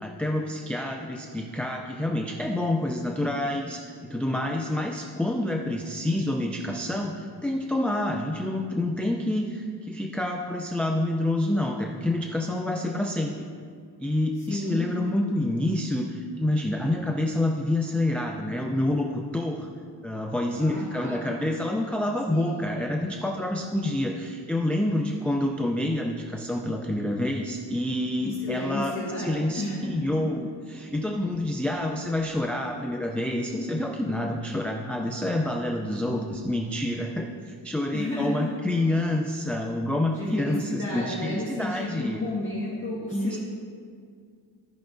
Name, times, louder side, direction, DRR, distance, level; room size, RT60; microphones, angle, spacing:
voice 1, 0.0-13.5 14.0-19.7 20.0-42.2 43.1-43.4, left 1 dB, 5° left, 0 dB, 0.3 m, -28 dB
voice 2, 14.4-14.9 20.5-21.2 22.3-22.6 28.2-29.3 29.6-29.9 37.9-38.5 40.1-43.4, left 1 dB, 30° left, -9 dB, 1.7 m, -32 dB
14.5 x 5.7 x 2.6 m, 2.1 s
wide cardioid pair, 145°, 42 cm